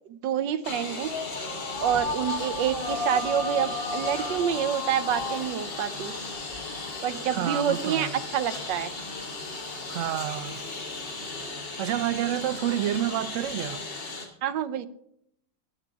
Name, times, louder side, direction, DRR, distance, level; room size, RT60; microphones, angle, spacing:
voice 1, 0.1-1.1 1.8-6.1 7.0-9.0 14.4-14.9, right 9 dB, 90° right, 1.5 m, -27 dB
Engine, 0.6-14.3, left 3 dB, 80° left, 3.5 m, -36 dB
sound 1, 1.0-13.8, left 3 dB, 40° left, 1.0 m, -36 dB
voice 2, 7.3-8.1 9.9-10.6 11.8-13.8, right 12 dB, 65° right, 0.8 m, -29 dB
22.0 x 7.7 x 3.6 m
omnidirectional pair, 1.9 m